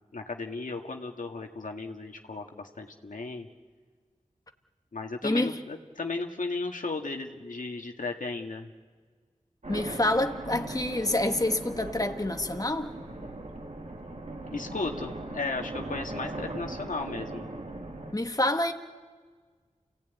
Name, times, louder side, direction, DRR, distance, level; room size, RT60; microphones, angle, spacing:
voice 1, 0.1-3.5 4.9-8.7 14.5-17.5, left 3 dB, 80° left, 3 dB, 1.9 m, -35 dB
sound 1, 9.6-18.1, right 2 dB, 60° right, 2.8 m, -39 dB
voice 2, 9.7-12.9 18.1-18.7, left 1 dB, 25° left, 5 dB, 1.7 m, -27 dB
28.5 x 17.0 x 9.4 m, 1.5 s
cardioid pair, 40°, 13 cm